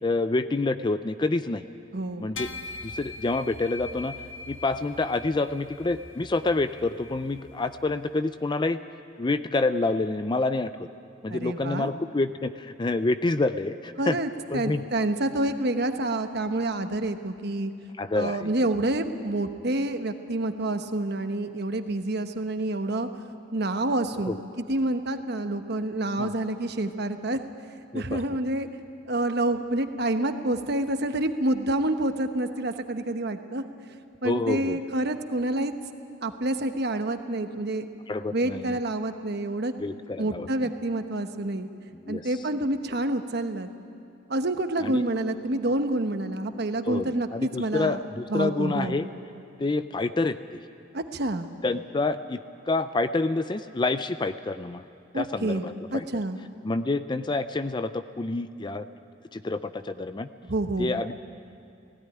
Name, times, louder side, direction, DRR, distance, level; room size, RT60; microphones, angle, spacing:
voice 1, 0.0-1.7 2.2-2.5 2.8-4.2 4.5-8.8 9.2-10.9 11.2-14.2 14.5-14.8 18.0-18.5 24.3-24.4 26.2-26.3 27.9-28.4 34.2-34.8 38.1-38.8 39.8-40.5 41.9-42.3 44.8-45.0 46.9-47.1 47.3-49.1 49.6-50.6 51.6-52.4 52.7-54.8 55.1-56.2 56.6-58.9 59.3-60.3 60.8-61.2, left 3 dB, 25° left, 11 dB, 0.4 m, -28 dB
voice 2, 1.9-2.3 11.3-11.9 14.0-17.7 18.1-23.1 23.5-24.3 24.7-27.4 27.9-28.7 29.1-33.6 34.2-35.7 36.2-37.9 38.3-39.7 40.2-41.7 42.1-43.7 44.3-48.0 48.3-49.0 50.9-51.5 55.1-55.6 55.9-56.4 60.5-61.0, right 1 dB, 55° right, 8 dB, 1.1 m, -28 dB
sound 1, 2.4-8.0, left 3 dB, 85° left, 1.3 m, -42 dB
17.5 x 16.5 x 9.9 m, 2.5 s
head